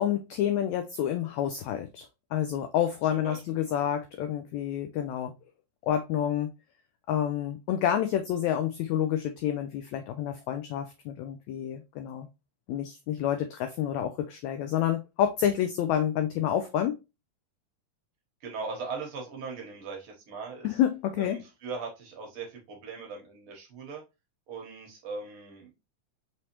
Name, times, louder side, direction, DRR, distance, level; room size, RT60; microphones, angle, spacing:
voice 1, 0.0-2.1 2.3-5.3 5.8-6.5 7.1-12.3 12.7-16.9 20.6-21.4, left 10 dB, 90° left, 1.6 m, -28 dB
voice 2, 3.1-3.8 18.4-20.8 21.2-24.0 24.5-25.8, right 4 dB, 65° right, 1.4 m, -40 dB
5.4 x 3.2 x 2.9 m
omnidirectional pair, 3.8 m